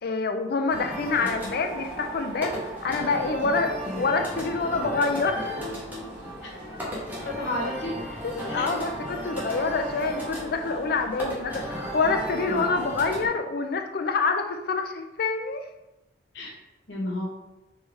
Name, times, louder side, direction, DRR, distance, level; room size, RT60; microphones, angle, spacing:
voice 1, 0.0-5.6 8.2-15.6, left 4 dB, 60° left, 6 dB, 0.5 m, -27 dB
sound 1, 0.7-13.3, equal, 10° right, 1.2 m, -34 dB
voice 2, 7.2-8.0 8.5-8.7 16.3-16.6 16.9-17.3, left 1 dB, 80° left, -2 dB, 1.2 m, -32 dB
4.4 x 3.3 x 3.4 m, 0.94 s
head